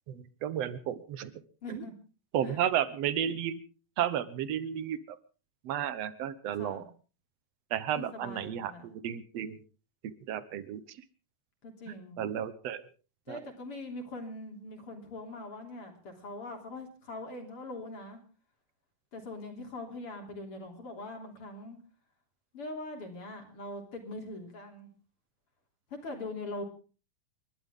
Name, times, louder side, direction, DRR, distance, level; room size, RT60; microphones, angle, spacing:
voice 1, 0.1-1.3 1.7-1.9 2.3-3.6 4.0-5.2 5.6-6.8 7.7-9.6 10.0-11.0 11.9-12.8 13.3-13.4, right 10 dB, 65° right, 14 dB, 2.0 m, -33 dB
voice 2, 1.6-1.9 2.4-2.6 6.5-6.8 7.9-9.0 11.6-12.2 13.3-18.2 19.1-21.8 22.5-24.9 25.9-26.6, left 2 dB, 45° left, 3 dB, 4.0 m, -42 dB
29.5 x 12.0 x 3.7 m, 0.36 s
omnidirectional pair, 3.6 m